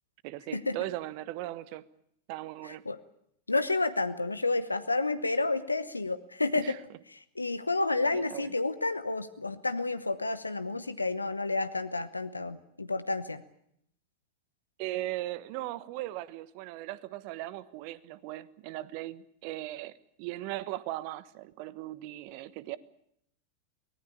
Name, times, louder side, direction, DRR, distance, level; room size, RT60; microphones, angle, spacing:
voice 1, 0.2-1.8 2.3-2.8 6.6-6.8 8.1-8.5 14.8-19.9 20.2-22.8, right 16 dB, 50° right, 17 dB, 1.3 m, -38 dB
voice 2, 2.6-3.0 3.5-6.8 7.1-13.4, left 3 dB, 90° left, 13 dB, 1.0 m, -30 dB
23.5 x 19.0 x 8.7 m, 0.72 s
figure-of-eight pair, 90°, 0 cm